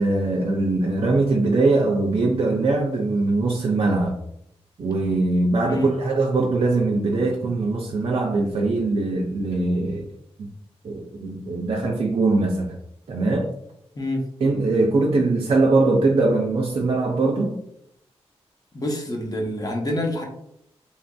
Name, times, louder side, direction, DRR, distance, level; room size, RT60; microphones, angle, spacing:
voice 1, 0.0-4.2 4.8-10.1 10.4-10.5 10.8-12.8 13.1-13.5 14.4-17.6, right 3 dB, 55° right, 0.4 m, -21 dB
voice 2, 18.7-20.2, left 1 dB, 35° left, 0.7 m, -26 dB
2.8 x 2.5 x 2.2 m
cardioid pair, 60°, 11 cm